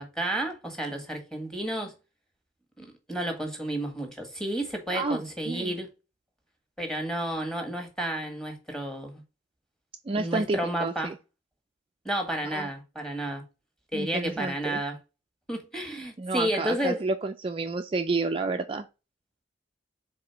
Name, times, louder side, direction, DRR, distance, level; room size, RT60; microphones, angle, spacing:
voice 1, 0.0-1.9 2.8-5.9 6.8-9.1 10.2-11.1 12.0-13.4 13.9-15.0 15.5-17.1, right 1 dB, 5° left, 1.5 m, -31 dB
voice 2, 4.9-5.7 10.1-11.2 12.5-12.7 13.9-14.8 16.2-18.9, right 3 dB, 30° right, 0.4 m, -30 dB
4.9 x 3.7 x 5.7 m
head